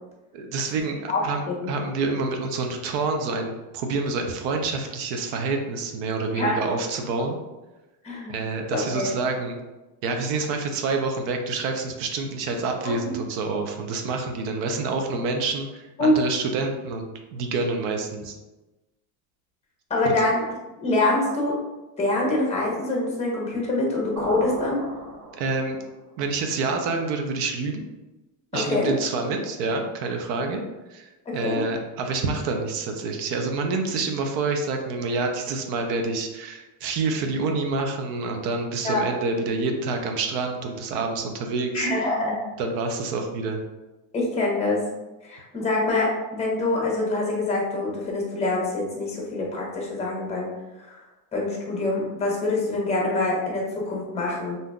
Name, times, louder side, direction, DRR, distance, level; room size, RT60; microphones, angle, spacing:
voice 1, 0.3-7.4 8.3-9.6 10.0-18.3 20.0-20.1 25.4-25.8 26.2-27.8 28.5-30.6 30.9-41.9 42.6-43.6, right 3 dB, 80° right, 4 dB, 0.7 m, -27 dB
voice 2, 8.0-8.3 8.7-9.1 12.8-13.1 16.0-16.2 19.9-20.4 20.8-21.6 22.0-24.9 28.5-28.9 31.3-31.6 38.8-39.1 41.7-42.4 44.1-44.9 45.2-50.5 50.9-51.0 51.3-54.6, left 2 dB, 15° left, -2 dB, 0.7 m, -25 dB
sound 1, 24.2-25.9, right 2 dB, 35° right, 0.6 m, -35 dB
3.6 x 2.7 x 2.2 m, 1.1 s
cardioid pair, 140°, 47 cm